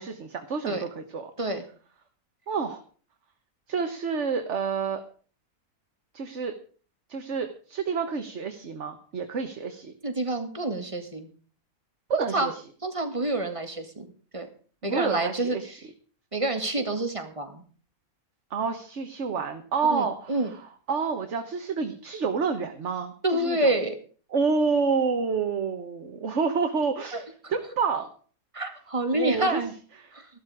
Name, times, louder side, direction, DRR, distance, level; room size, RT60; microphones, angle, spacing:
voice 1, 0.0-1.3 2.5-2.8 3.7-5.0 6.1-6.6 7.1-9.9 12.1-12.5 14.8-15.7 18.5-20.4 20.9-23.6 24.3-27.2 27.5-28.1 29.1-29.6 30.0-30.1, right 5 dB, 50° right, 6 dB, 1.5 m, -28 dB
voice 2, 10.0-11.3 12.3-12.5 12.8-14.1 14.3-14.5 14.8-15.9 16.3-17.6 19.9-20.5 23.2-23.9 27.1-27.6 28.5-29.7 30.1-30.3, right 2 dB, 20° right, 6 dB, 2.0 m, -28 dB
14.5 x 12.5 x 4.9 m, 0.42 s
omnidirectional pair, 1.6 m